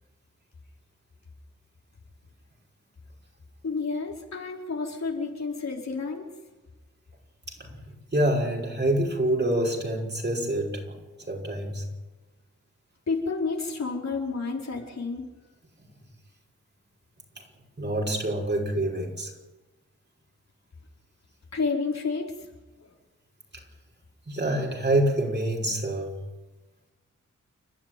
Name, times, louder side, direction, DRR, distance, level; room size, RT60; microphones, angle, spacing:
voice 1, 3.6-6.3 13.1-15.2 21.5-22.3, left 4 dB, 60° left, -1 dB, 5.0 m, -30 dB
voice 2, 7.6-11.9 17.3-17.5 17.8-19.3 23.5-23.6 24.3-26.2, right 1 dB, 35° right, 1 dB, 5.8 m, -27 dB
30.0 x 12.5 x 9.5 m, 1.2 s
wide cardioid pair, 95°, 31 cm